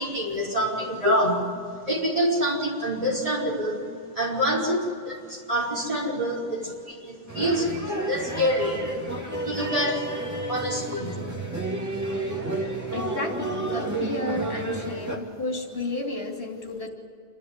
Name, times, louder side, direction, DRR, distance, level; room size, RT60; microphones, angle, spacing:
voice 1, 0.0-1.5 1.9-3.8 4.2-7.7 8.1-8.8 9.5-10.1 10.5-11.2, equal, 35° right, -3 dB, 5.3 m, -26 dB
sound 1, 7.3-15.2, right 2 dB, 15° right, 2.3 m, -31 dB
voice 2, 12.9-16.9, left 2 dB, 65° left, 0 dB, 3.2 m, -33 dB
27.5 x 13.0 x 9.8 m, 2.2 s
omnidirectional pair, 1.1 m